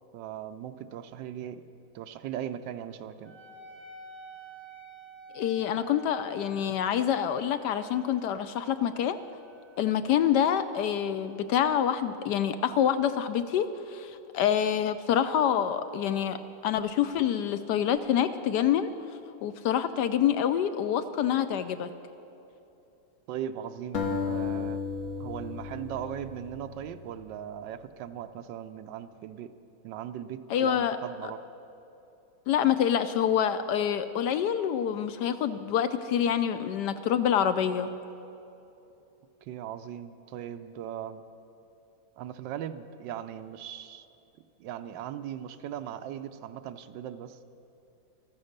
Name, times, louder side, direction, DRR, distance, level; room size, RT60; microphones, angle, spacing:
voice 1, 0.1-1.6 1.9-3.3 23.3-24.8 25.2-29.5 29.8-31.4 39.4-41.2 42.2-44.1 44.6-47.5, right 10 dB, 75° right, 11 dB, 1.2 m, -39 dB
Wind instrument woodwind instrument, 3.2-12.2, right 1 dB, 10° right, 1.0 m, -51 dB
voice 2, 5.3-9.2 9.8-16.4 16.6-18.9 19.4-21.9 30.5-31.0 32.5-37.9, left 9 dB, 75° left, 11 dB, 1.1 m, -26 dB
sound 1, 23.9-27.2, left 5 dB, 55° left, 1.4 m, -34 dB
14.0 x 13.0 x 6.5 m, 2.9 s
omnidirectional pair, 2.0 m